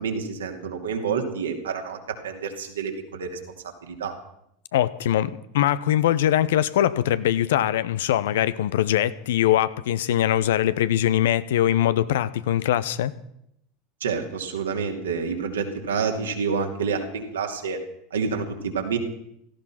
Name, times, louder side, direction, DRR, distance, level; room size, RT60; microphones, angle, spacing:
voice 1, 0.0-3.4 3.8-4.1 14.0-17.8 18.1-19.0, right 5 dB, 85° right, 3 dB, 2.7 m, -28 dB
voice 2, 4.7-13.1, left 12 dB, 75° left, 16 dB, 0.8 m, -22 dB
17.0 x 14.5 x 5.9 m, 0.77 s
hypercardioid pair, 80°, 0 cm